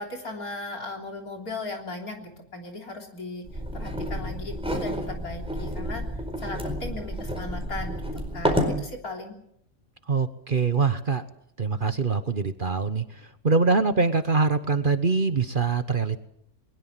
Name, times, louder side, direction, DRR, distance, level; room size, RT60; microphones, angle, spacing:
voice 1, 0.0-3.5 3.7-6.0 6.4-9.4, left 2 dB, 75° left, 2 dB, 4.1 m, -37 dB
sound 1, 3.5-8.8, equal, 5° right, 4.5 m, -30 dB
voice 2, 10.1-11.2 11.6-16.2, right 4 dB, 40° right, 10 dB, 1.1 m, -24 dB
21.5 x 21.0 x 7.5 m, 0.73 s
omnidirectional pair, 1.6 m